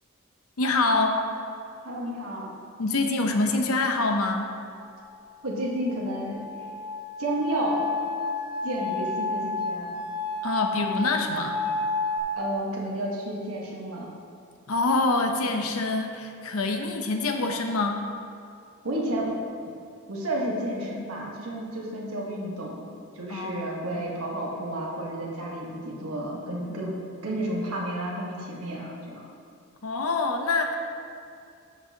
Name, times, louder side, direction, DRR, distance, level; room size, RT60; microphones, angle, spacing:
voice 1, 0.6-1.2 2.8-4.5 10.4-11.6 14.7-18.0 23.3-23.6 23.9-24.0 29.8-30.7, left 3 dB, 90° left, 4 dB, 0.8 m, -25 dB
voice 2, 1.8-2.5 5.4-6.4 7.2-7.9 8.6-10.1 12.4-14.1 18.8-19.3 20.1-26.9 27.2-29.2, right 1 dB, 90° right, -3 dB, 1.4 m, -31 dB
sound 1, 5.1-12.2, left 3 dB, 5° right, 1.4 m, -31 dB
12.5 x 6.1 x 2.9 m, 2.5 s
head